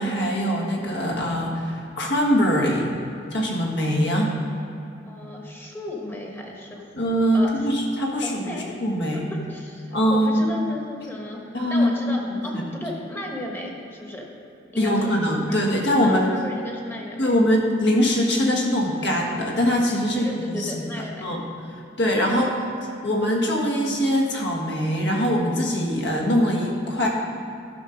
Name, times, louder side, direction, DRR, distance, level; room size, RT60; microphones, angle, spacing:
voice 1, 0.0-2.9 3.3-4.3 6.9-9.2 9.9-10.5 11.5-12.2 12.5-12.6 14.8-16.3 17.2-20.7 21.2-21.4 22.0-22.5 23.0-27.1, equal, 70° left, -1 dB, 1.5 m, -22 dB
voice 2, 5.0-6.9 7.3-7.7 8.2-8.8 9.1-14.3 14.7-15.2 15.5-15.6 16.0-17.4 20.1-21.3 22.3-22.6, left 1 dB, 10° left, 0 dB, 1.2 m, -35 dB
11.5 x 5.8 x 5.1 m, 2.7 s
head